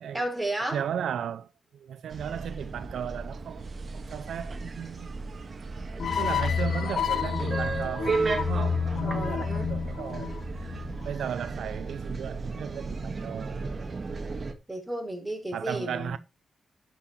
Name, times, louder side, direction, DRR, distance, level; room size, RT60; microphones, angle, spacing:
voice 1, 0.1-0.8 9.0-9.4 14.7-16.2, right 1 dB, 10° right, 4.7 m, -32 dB
voice 2, 0.7-5.1 6.2-13.7 15.5-16.2, right 8 dB, 85° right, 0.5 m, -35 dB
sound 1, 2.1-14.5, right 3 dB, 45° right, 1.6 m, -35 dB
sound 2, 6.0-11.2, left 7 dB, 65° left, 0.7 m, -30 dB
11.5 x 6.2 x 4.5 m
cardioid pair, 85°, 0 cm